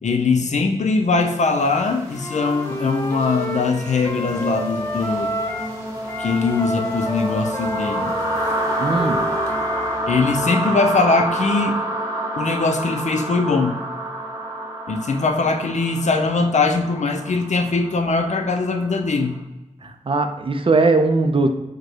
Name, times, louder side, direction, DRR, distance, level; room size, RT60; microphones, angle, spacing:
voice 1, 0.0-5.3 6.2-8.1 10.1-11.8 12.4-13.8 14.9-19.3, left 3 dB, 65° left, 5 dB, 0.5 m, -21 dB
sound 1, 1.4-19.2, right 1 dB, 20° right, 1.0 m, -28 dB
Wind instrument woodwind instrument, 2.1-5.8 6.0-10.0, left 1 dB, 20° left, 0.4 m, -30 dB
voice 2, 8.8-9.2 19.8-21.5, right 3 dB, 45° right, 6 dB, 0.5 m, -19 dB
4.9 x 2.2 x 4.4 m, 1.0 s
wide cardioid pair, 85°, 13 cm